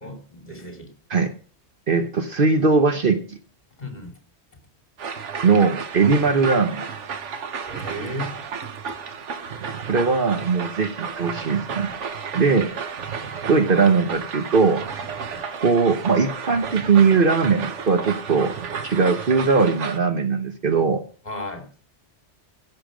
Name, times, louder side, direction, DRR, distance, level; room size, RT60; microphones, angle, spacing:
voice 1, 0.0-0.9 3.8-4.1 7.6-8.3 15.3-15.5 21.2-21.7, left 1 dB, 35° left, 2.8 m, -34 dB
voice 2, 1.9-3.4 5.4-6.8 9.9-11.9 12.3-12.8 13.5-15.1 15.6-18.5 18.8-21.0, right 4 dB, 50° right, 1.1 m, -20 dB
sound 1, 5.0-20.0, right 6 dB, 85° right, 1.3 m, -32 dB
15.5 x 6.9 x 5.0 m
omnidirectional pair, 1.2 m